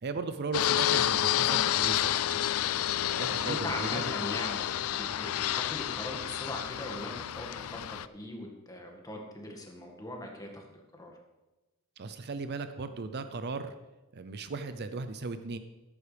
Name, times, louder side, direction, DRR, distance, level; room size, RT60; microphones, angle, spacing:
voice 1, 0.0-2.6 2.9-4.0 12.0-13.7 14.1-15.6, right 4 dB, 50° right, 10 dB, 0.6 m, -37 dB
Fixed-wing aircraft airplane, 0.5-8.1, left 11 dB, 75° left, 0.4 m, -30 dB
voice 2, 3.3-10.6 10.9-11.2, left 1 dB, 15° left, 1 dB, 1.9 m, -40 dB
13.5 x 11.0 x 3.4 m, 1.1 s
head